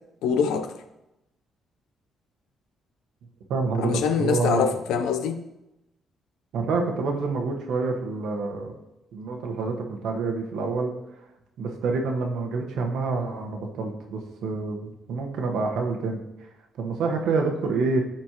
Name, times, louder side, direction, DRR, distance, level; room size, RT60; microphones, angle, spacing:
voice 1, 0.2-0.7 3.8-5.4, left 6 dB, 90° left, 9 dB, 0.6 m, -24 dB
voice 2, 3.5-4.6 6.5-8.7 9.1-10.9 11.6-16.2 16.8-18.0, right 4 dB, 80° right, 2 dB, 1.2 m, -27 dB
12.5 x 4.4 x 3.0 m, 0.91 s
cardioid pair, 90°, 0 cm